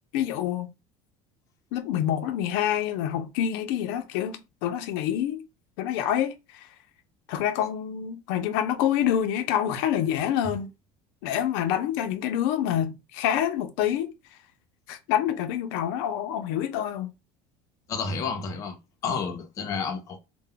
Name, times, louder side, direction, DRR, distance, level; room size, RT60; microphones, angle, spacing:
voice 1, 0.1-0.7 1.7-5.5 5.8-6.7 7.3-10.7 11.2-14.1 14.9-17.1, left 10 dB, 85° left, 0.4 m, -27 dB
voice 2, 17.9-18.8 19.0-20.2, left 5 dB, 30° left, 0.5 m, -30 dB
2.1 x 2.1 x 3.6 m
cardioid pair, 175°, 12 cm